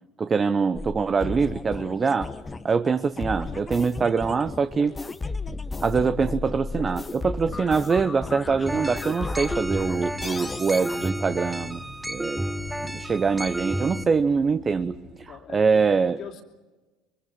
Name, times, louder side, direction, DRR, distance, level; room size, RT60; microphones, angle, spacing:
voice 1, 0.2-2.3 2.6-4.9 5.8-11.8 12.1-12.4 12.8-16.2, right 5 dB, 30° right, 11 dB, 0.7 m, -24 dB
sound 1, 0.7-11.1, left 3 dB, 20° left, 0.9 m, -34 dB
sound 2, 2.2-15.2, right 4 dB, 50° right, 3.6 m, -50 dB
sound 3, 8.7-14.0, equal, 5° right, 1.0 m, -32 dB
voice 2, 15.1-16.4, left 8 dB, 50° left, 2 dB, 2.8 m, -42 dB
25.0 x 23.0 x 5.9 m, 1.2 s
hypercardioid pair, 70°, 0 cm